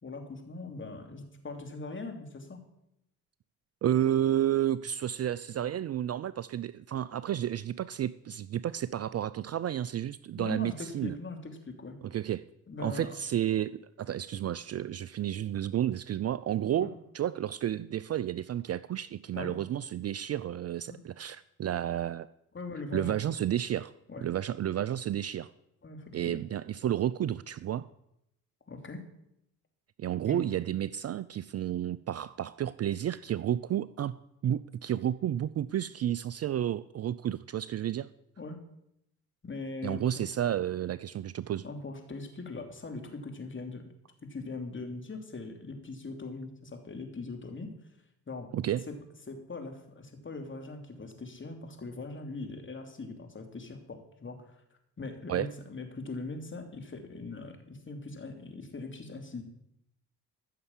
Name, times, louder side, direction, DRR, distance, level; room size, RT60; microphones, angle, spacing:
voice 1, 0.0-2.6 10.3-11.9 12.7-13.2 16.8-16.9 19.3-19.6 20.9-21.0 22.5-23.2 24.1-24.3 25.8-26.4 28.7-29.0 30.2-30.5 38.4-38.6 39.4-40.5 41.6-43.9 44.3-47.7 48.3-48.5 48.9-49.0 49.3-54.6 55.0-59.4, left 3 dB, 30° left, 4 dB, 3.1 m, -41 dB
voice 2, 3.8-11.1 12.0-12.4 12.8-16.9 17.1-22.3 22.9-23.9 24.2-25.5 26.1-27.8 30.0-34.1 34.4-38.1 39.8-41.6 48.5-48.8 55.3-55.5, right 11 dB, 40° right, 17 dB, 0.5 m, -31 dB
14.0 x 6.7 x 7.4 m, 0.80 s
hypercardioid pair, 60°, 39 cm